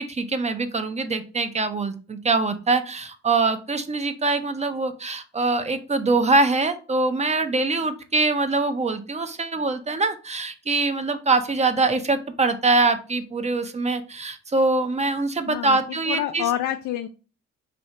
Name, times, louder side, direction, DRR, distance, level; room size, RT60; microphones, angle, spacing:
voice 1, 0.0-16.4, right 3 dB, 20° right, 10 dB, 0.6 m, -23 dB
voice 2, 15.5-15.8 16.1-17.1, left 11 dB, 75° left, 6 dB, 0.5 m, -27 dB
4.2 x 2.7 x 3.1 m, 0.36 s
cardioid pair, 90°, 30 cm